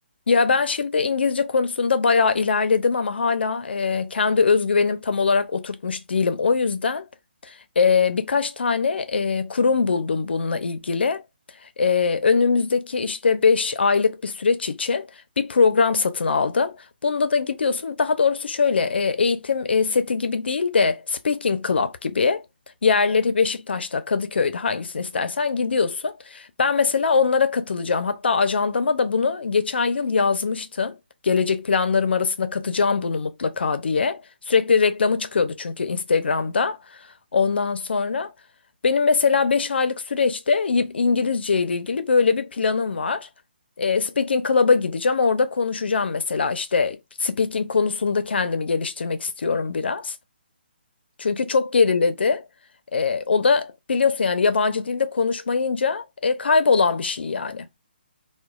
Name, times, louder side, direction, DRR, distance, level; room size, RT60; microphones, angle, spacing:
voice 1, 0.3-7.0 7.4-11.2 11.8-15.1 15.4-16.8 17.0-22.4 22.8-31.0 31.2-34.2 34.5-36.8 37.3-38.3 38.8-43.3 43.8-50.2 51.2-52.4 52.9-57.7, left 5 dB, 80° left, 0.5 m, -22 dB
2.9 x 2.2 x 2.3 m
hypercardioid pair, 165°, 6 cm